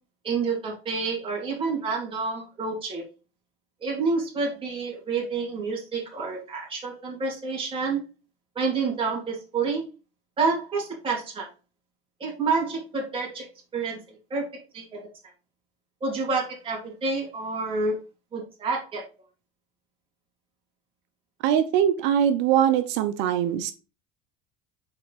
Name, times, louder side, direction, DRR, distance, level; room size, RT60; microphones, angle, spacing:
voice 1, 0.2-3.0 3.8-8.0 8.5-9.8 10.4-11.5 12.2-13.5 13.7-14.0 14.3-14.5 14.7-15.1 16.0-18.0 18.3-19.0, right 4 dB, 25° right, -3 dB, 2.8 m, -28 dB
voice 2, 21.4-23.7, right 9 dB, 65° right, 10 dB, 0.8 m, -22 dB
5.4 x 4.6 x 4.1 m, 0.31 s
supercardioid pair, 110°, 20 cm